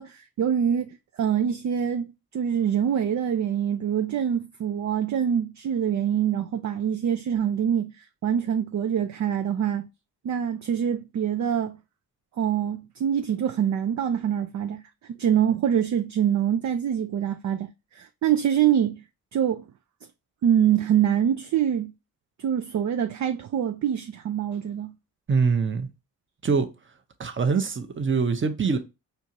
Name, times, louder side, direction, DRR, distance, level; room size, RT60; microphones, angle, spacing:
voice 1, 0.0-9.9 10.2-11.8 12.4-14.8 15.1-19.0 19.3-19.6 20.4-21.9 22.4-24.9, right 9 dB, 45° right, 0.4 m, -25 dB
voice 2, 25.3-25.9 26.4-26.7 27.2-28.8, right 5 dB, 30° right, 0.8 m, -23 dB
4.4 x 2.5 x 2.8 m
supercardioid pair, 55°, 41 cm